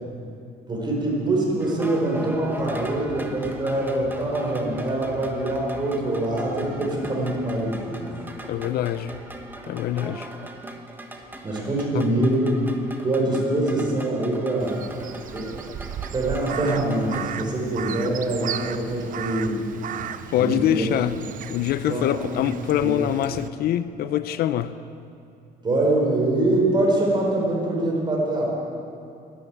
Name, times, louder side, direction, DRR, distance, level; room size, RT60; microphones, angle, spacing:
voice 1, 0.7-8.1 11.4-12.5 13.0-14.8 15.3-15.5 16.1-19.6 20.3-20.9 21.9-22.5 22.8-23.1 25.6-28.5, right 1 dB, 25° right, -2 dB, 4.5 m, -24 dB
sound 1, 1.6-17.3, right 1 dB, 10° right, 1.4 m, -39 dB
voice 2, 8.5-9.2 9.7-10.3 20.3-21.1 21.5-24.8, left 11 dB, 65° left, 13 dB, 0.5 m, -24 dB
Crow, 14.6-23.5, right 9 dB, 50° right, 0.6 m, -36 dB
12.0 x 11.5 x 8.5 m, 2.5 s
cardioid pair, 110°, 17 cm